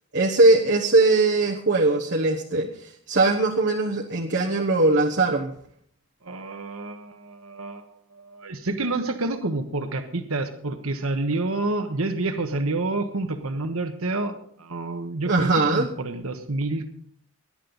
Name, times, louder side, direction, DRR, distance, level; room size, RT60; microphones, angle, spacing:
voice 1, 0.1-5.5 15.3-15.9, right 2 dB, 50° right, 1 dB, 1.1 m, -20 dB
voice 2, 6.2-7.8 8.1-16.9, right 2 dB, 70° right, 7 dB, 1.3 m, -28 dB
19.0 x 11.0 x 4.0 m, 0.63 s
head